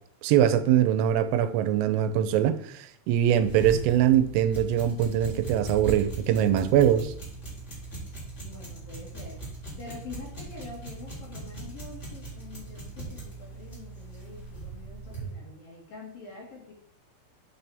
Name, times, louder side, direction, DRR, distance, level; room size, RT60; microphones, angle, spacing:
voice 1, 0.2-7.1, right 10 dB, 85° right, 3.3 m, -23 dB
sound 1, 3.4-15.3, right 3 dB, 15° left, 2.7 m, -39 dB
voice 2, 8.4-9.5 9.8-16.7, left 4 dB, 55° left, 3.1 m, -45 dB
9.8 x 7.0 x 3.4 m
omnidirectional pair, 5.9 m